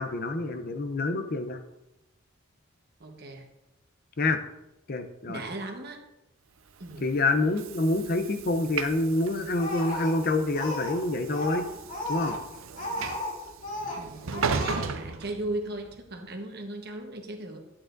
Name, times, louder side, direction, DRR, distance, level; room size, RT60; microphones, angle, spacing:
voice 1, 0.0-1.6 4.2-4.4 4.9-5.4 7.0-11.7 12.1-12.4, left 2 dB, 45° left, 7 dB, 0.6 m, -27 dB
voice 2, 3.0-3.5 5.3-6.0 6.8-7.1 14.0-17.6, right 1 dB, 50° right, 3 dB, 1.2 m, -37 dB
Train / Sliding door, 6.7-16.0, right 5 dB, 75° right, 0.6 m, -37 dB
Speech, 9.6-11.0 11.3-13.4 13.6-14.0 14.3-14.8, left 1 dB, 60° left, 3.3 m, -34 dB
11.0 x 8.6 x 2.6 m, 0.94 s
head